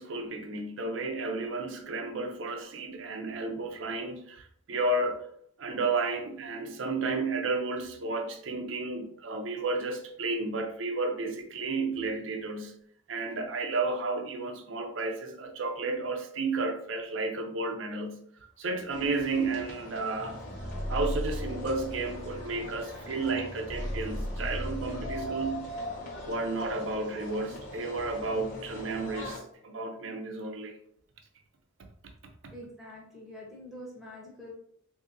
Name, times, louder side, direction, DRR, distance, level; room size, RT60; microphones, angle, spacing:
voice 1, 0.0-5.3 5.6-12.7 13.1-18.2 18.6-20.4 20.9-25.7 26.2-30.8, right 3 dB, 70° right, 0.6 m, -32 dB
sound 1, 18.9-29.4, left 1 dB, 40° left, 1.2 m, -42 dB
sound 2, 20.2-26.9, equal, 25° left, 0.5 m, -37 dB
voice 2, 32.5-34.5, left 1 dB, ahead, 1.1 m, -45 dB
3.8 x 2.7 x 2.6 m
head